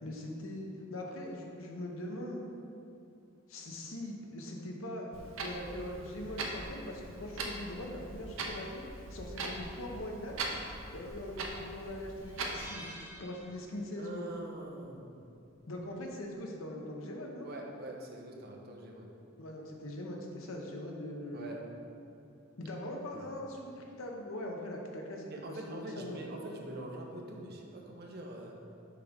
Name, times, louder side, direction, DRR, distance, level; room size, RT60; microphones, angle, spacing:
voice 1, 0.0-2.4 3.5-8.8 9.1-10.3 10.9-12.8 13.2-14.3 15.7-17.5 19.4-21.5 22.6-26.2, left 1 dB, 90° left, 0 dB, 0.9 m, -41 dB
Clock, 5.1-12.7, right 2 dB, 80° right, 0.7 m, -41 dB
sound 1, 12.2-14.0 14.3-14.5 15.8-16.1, right 1 dB, 10° right, 0.9 m, -50 dB
voice 2, 14.0-15.1 17.4-19.1 21.3-21.6 23.1-23.3 25.3-28.6, right 1 dB, 50° right, 0 dB, 0.8 m, -44 dB
6.8 x 3.6 x 5.2 m, 2.6 s
head